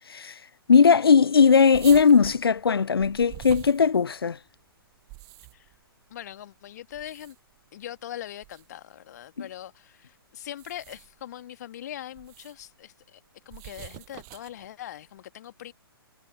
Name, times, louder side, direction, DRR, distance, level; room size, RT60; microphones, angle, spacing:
voice 1, 0.7-4.4, left 6 dB, 75° left, 0.4 m, -18 dB
sound 1, 1.7-4.4 4.9-5.8 6.9-7.6 8.4-8.7 10.4-11.2 12.2-12.7 13.5-14.7, right 30 dB, 25° right, 5.5 m, -44 dB
voice 2, 6.1-7.4 7.7-13.2 13.5-15.7, left 11 dB, 45° left, 1.9 m, -41 dB
figure-of-eight pair, 125°, 13 cm